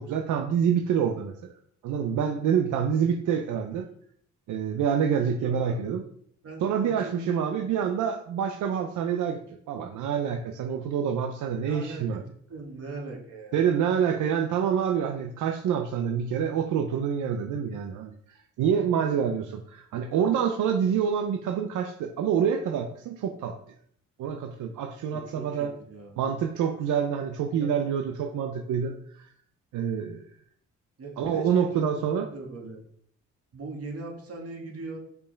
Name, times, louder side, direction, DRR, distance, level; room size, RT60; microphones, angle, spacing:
voice 1, 0.0-1.5 1.8-3.9 4.5-6.0 6.6-9.4 9.7-12.2 13.5-18.1 18.6-23.6 24.2-25.7 26.2-29.3 29.7-30.3 31.2-32.3, right 7 dB, 80° right, 5 dB, 0.7 m, -27 dB
voice 2, 5.4-5.9 6.4-7.4 11.6-13.6 25.1-26.2 27.5-27.7 31.0-31.9 32.3-32.8 33.5-35.0, right 3 dB, 50° right, -1 dB, 2.4 m, -40 dB
5.5 x 4.8 x 5.1 m, 0.63 s
cardioid pair, 90°, 30 cm